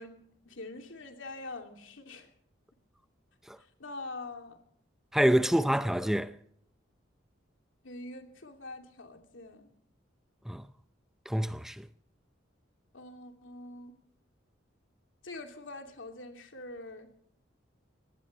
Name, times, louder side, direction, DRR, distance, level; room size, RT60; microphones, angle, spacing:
voice 1, 0.0-2.3 3.8-4.6 5.3-5.6 7.8-9.7 12.9-13.9 15.2-17.1, left 2 dB, 85° left, 2.8 m, -44 dB
voice 2, 5.1-6.3 10.5-10.7 11.3-11.9, equal, ahead, 0.6 m, -27 dB
24.0 x 18.5 x 3.3 m
head